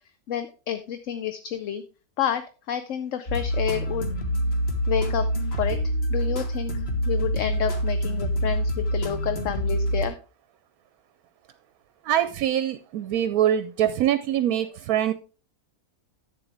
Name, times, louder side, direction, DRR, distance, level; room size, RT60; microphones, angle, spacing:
voice 1, 0.3-1.8 2.2-2.4 2.7-4.1 4.9-5.3 5.6-5.8 6.1-6.8 7.1-10.1, left 9 dB, 60° left, 10 dB, 1.0 m, -29 dB
sound 1, 3.3-10.1, equal, 45° left, 1.7 m, -26 dB
voice 2, 12.0-15.1, right 11 dB, 75° right, 13 dB, 1.0 m, -24 dB
11.0 x 8.2 x 3.3 m, 0.34 s
omnidirectional pair, 1.6 m